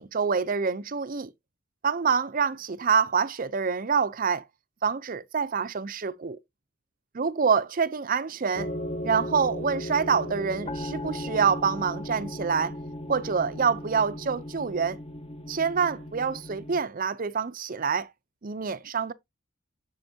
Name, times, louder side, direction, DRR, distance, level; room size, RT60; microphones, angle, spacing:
voice 1, 0.0-1.3 1.8-4.4 4.8-6.4 7.1-8.7 9.0-12.7 13.1-15.0 15.5-18.1 18.4-19.1, right 6 dB, 45° right, 0.6 m, -26 dB
sound 1, 8.5-16.8, left 1 dB, 30° left, 0.9 m, -36 dB
7.9 x 7.0 x 2.7 m
head